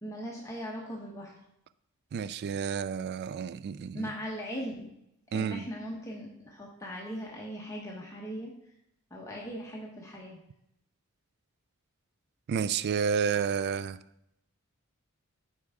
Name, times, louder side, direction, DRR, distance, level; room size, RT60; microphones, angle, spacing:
voice 1, 0.0-1.3 3.9-4.9 5.3-8.5 9.1-10.4, equal, 15° left, -3 dB, 0.9 m, -39 dB
voice 2, 2.1-4.1 5.3-5.6 12.5-14.0, right 6 dB, 50° right, 16 dB, 0.3 m, -30 dB
8.6 x 4.4 x 3.6 m, 0.79 s
head